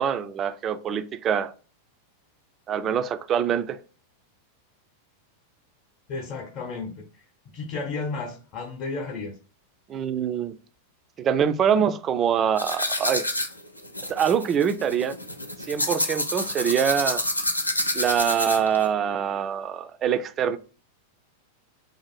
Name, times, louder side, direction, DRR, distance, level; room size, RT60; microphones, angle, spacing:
voice 1, 0.0-1.5 2.7-3.8 9.9-10.6 11.2-13.2 14.1-15.2 15.6-17.2 17.9-20.6, right 8 dB, 30° right, 0.3 m, -24 dB
voice 2, 6.1-7.2 7.5-9.4, left 4 dB, 40° left, 0.7 m, -33 dB
sound 1, 12.6-18.8, left 1 dB, 90° left, 0.4 m, -28 dB
2.6 x 2.5 x 4.1 m
figure-of-eight pair, 90°, 0 cm